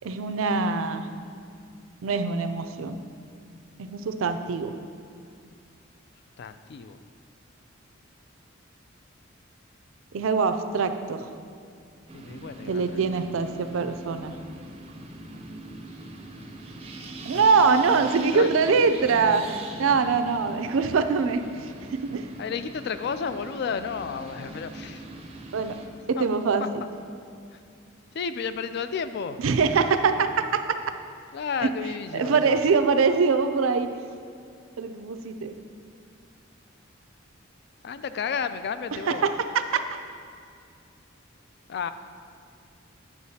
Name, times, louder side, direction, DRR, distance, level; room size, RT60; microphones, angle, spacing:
voice 1, 0.0-1.1 2.0-3.0 3.8-4.7 10.1-11.3 12.7-14.4 17.3-19.5 19.8-22.2 25.5-25.8 26.1-26.7 29.4-30.8 31.6-31.7 32.1-33.9 34.8-35.6 39.1-39.9, right 5 dB, 80° right, 9 dB, 0.4 m, -23 dB
voice 2, 6.4-7.0 12.1-13.0 17.3-17.4 17.9-18.8 22.4-25.1 26.2-26.3 26.6-26.7 27.5-27.6 28.1-29.4 31.3-32.6 37.8-39.3 41.7-41.9, left 6 dB, 55° left, 11 dB, 0.3 m, -32 dB
sound 1, 12.1-25.9, right 1 dB, 30° right, 0.5 m, -42 dB
9.3 x 7.0 x 2.8 m, 2.4 s
head